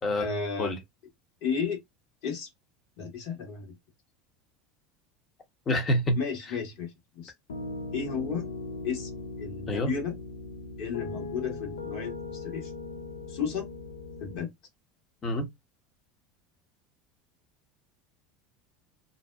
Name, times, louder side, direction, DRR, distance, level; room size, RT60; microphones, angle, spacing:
voice 1, 0.1-0.8 1.4-1.8 2.2-2.5 3.0-3.7 6.1-7.3 7.9-8.5 8.8-9.1 9.4-10.1 10.8-12.7 13.3-13.7 14.2-14.5, left 6 dB, 65° left, 1.3 m, -33 dB
voice 2, 5.7-6.2 9.7-9.9 15.2-15.5, left 1 dB, 35° left, 0.9 m, -26 dB
Piano, 7.5-14.4, left 3 dB, 85° left, 0.4 m, -39 dB
2.6 x 2.1 x 2.3 m
hypercardioid pair, 90°, 0 cm